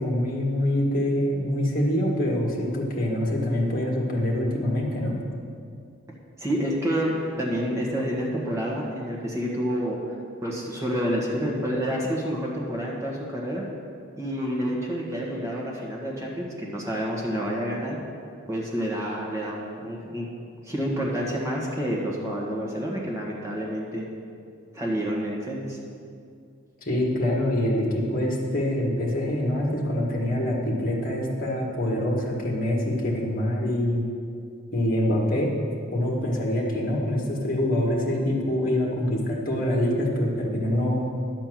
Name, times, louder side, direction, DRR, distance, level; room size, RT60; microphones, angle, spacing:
voice 1, 0.0-5.2 26.8-34.0 34.7-35.5 35.9-41.1, left 1 dB, 45° left, -1 dB, 1.7 m, -25 dB
voice 2, 6.4-10.0 10.4-13.6 14.2-18.0 18.5-20.2 20.6-24.1 24.7-25.8, equal, 15° right, -4 dB, 1.5 m, -28 dB
11.0 x 4.5 x 7.5 m, 2.3 s
head